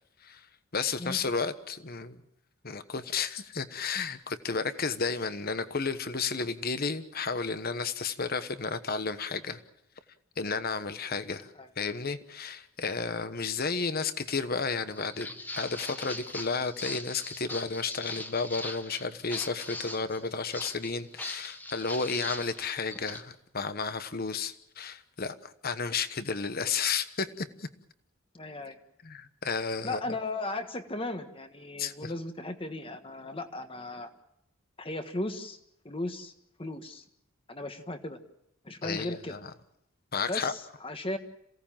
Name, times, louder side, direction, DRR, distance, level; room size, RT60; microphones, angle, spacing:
voice 1, 0.7-2.2 2.6-9.6 10.4-27.7 29.0-30.0 31.8-32.1 38.8-39.5 40.1-40.5, left 4 dB, 45° left, 12 dB, 1.2 m, -32 dB
Walk footsteps, 14.9-23.2, left 2 dB, 10° left, 1.2 m, -40 dB
voice 2, 28.3-28.8 29.8-34.1 34.8-35.6 35.8-36.3 36.6-37.0 37.5-38.2 38.6-39.3 40.3-41.2, left 2 dB, 25° left, 7 dB, 1.5 m, -36 dB
27.5 x 17.5 x 7.4 m, 0.79 s
head